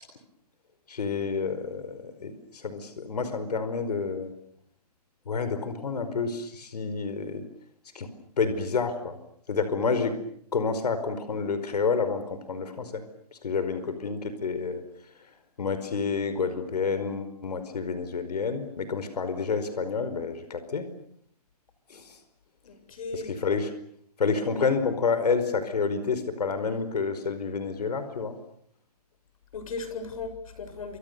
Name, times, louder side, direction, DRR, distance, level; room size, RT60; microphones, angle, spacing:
voice 1, 0.9-4.3 5.3-7.4 7.9-8.1 8.4-9.2 9.5-10.2 10.5-13.0 13.4-14.8 15.6-20.9 21.9-22.0 23.1-23.7 24.2-28.3, left 5 dB, 80° left, 11 dB, 5.0 m, -29 dB
voice 2, 22.6-23.4 29.5-31.0, left 4 dB, 60° left, 10 dB, 7.4 m, -37 dB
30.0 x 27.0 x 6.9 m, 0.67 s
hypercardioid pair, 170°, 20 cm